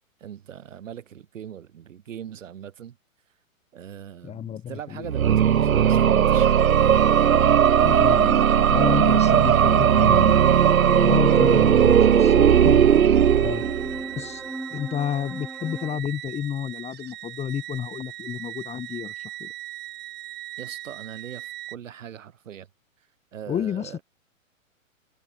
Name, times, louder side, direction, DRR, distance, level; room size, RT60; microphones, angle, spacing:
voice 1, 0.2-3.0 3.7-6.6 20.6-22.7 23.3-24.0, right 9 dB, 65° right, 7.2 m, -40 dB
voice 2, 4.2-5.1 7.8-10.4 10.8-12.9 13.4-13.6 14.1-14.4 14.7-19.5 23.5-24.0, left 9 dB, 15° left, 1.4 m, -31 dB
sound 1, 5.0-14.1, right 8 dB, 80° right, 0.9 m, -17 dB
sound 2, 6.4-21.8, right 14 dB, 25° right, 3.1 m, -40 dB
sound 3, 10.6-16.0, right 1 dB, ahead, 1.0 m, -34 dB
figure-of-eight pair, 115°, 42 cm